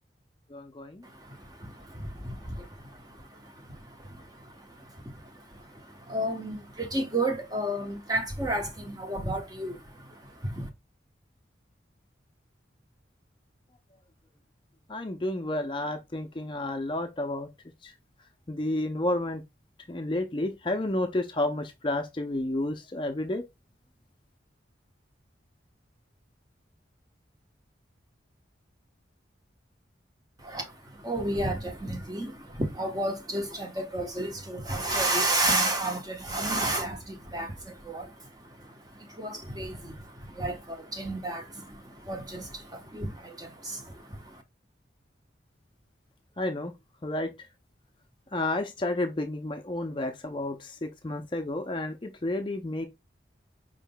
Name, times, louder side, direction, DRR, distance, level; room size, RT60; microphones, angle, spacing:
voice 1, 0.5-1.0 14.9-17.5 17.8-17.9 18.5-19.4 19.9-23.4 46.4-46.7 47.0-47.3 48.3-52.9, left 1 dB, 25° left, 0.5 m, -31 dB
voice 2, 1.0-10.7 30.4-44.4, right 1 dB, 20° right, 0.9 m, -32 dB
5.2 x 3.6 x 2.2 m
head